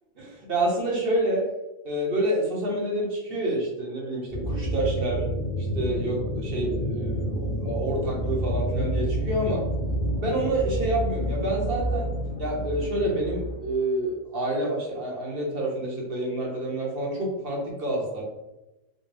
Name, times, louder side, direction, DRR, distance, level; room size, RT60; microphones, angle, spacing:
voice 1, 0.2-1.4 1.8-5.2 5.7-9.6 10.2-12.1 12.4-18.2, right 1 dB, 45° right, -2 dB, 1.1 m, -28 dB
sound 1, 4.3-13.6, equal, 30° left, 1.0 m, -29 dB
4.3 x 2.2 x 3.3 m, 1.0 s
omnidirectional pair, 1.5 m